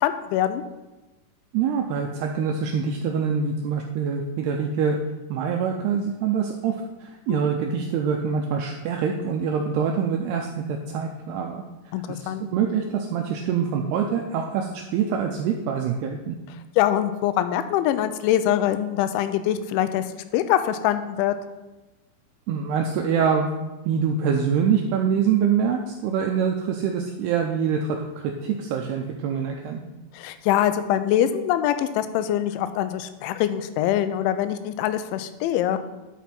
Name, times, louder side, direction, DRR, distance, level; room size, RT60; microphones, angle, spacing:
voice 1, 0.0-0.6 7.3-7.4 11.9-12.5 16.8-20.0 20.3-21.4 30.1-35.8, left 11 dB, 90° left, 11 dB, 3.0 m, -23 dB
voice 2, 1.5-5.0 5.3-6.8 7.0-11.6 12.1-16.4 22.5-23.5 23.9-28.0 28.2-29.8, right 7 dB, 90° right, 2 dB, 2.3 m, -25 dB
11.0 x 6.0 x 4.3 m, 1.1 s
omnidirectional pair, 5.3 m